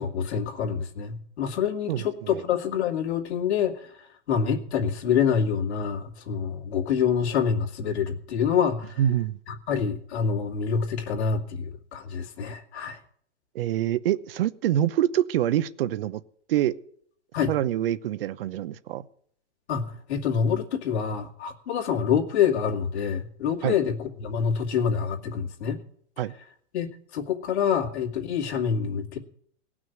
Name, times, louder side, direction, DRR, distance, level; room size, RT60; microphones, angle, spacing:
voice 1, 0.0-3.9 4.3-9.0 9.5-13.0 17.3-17.5 19.7-25.8 26.7-26.9 27.1-29.2, left 7 dB, 70° left, 1 dB, 2.7 m, -26 dB
voice 2, 1.9-2.4 9.0-9.4 13.5-16.2 16.5-16.8 17.5-19.0 23.6-23.8 26.2-26.3, right 11 dB, 55° right, 16 dB, 0.8 m, -25 dB
18.0 x 6.2 x 9.3 m, 0.65 s
hypercardioid pair, 155°, 35 cm